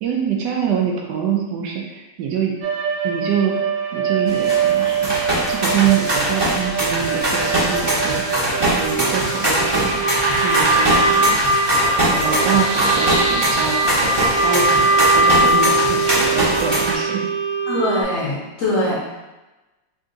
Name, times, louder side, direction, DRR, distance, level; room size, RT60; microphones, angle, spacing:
voice 1, 0.0-2.5 3.0-3.6 3.9-5.2 5.5-8.2 8.6-10.1 10.4-11.4 12.1-17.3, right 7 dB, 70° right, 0 dB, 1.2 m, -25 dB
sound 1, 2.6-18.0, right 3 dB, 90° right, 1.4 m, -21 dB
sound 2, 4.3-17.0, right 1 dB, 25° right, 0.6 m, -22 dB
sound 3, 10.0-15.6, right 1 dB, 45° right, 1.0 m, -28 dB
voice 2, 17.7-19.0, left 1 dB, 55° left, -6 dB, 1.0 m, -22 dB
3.7 x 2.5 x 3.8 m, 1.1 s
omnidirectional pair, 2.0 m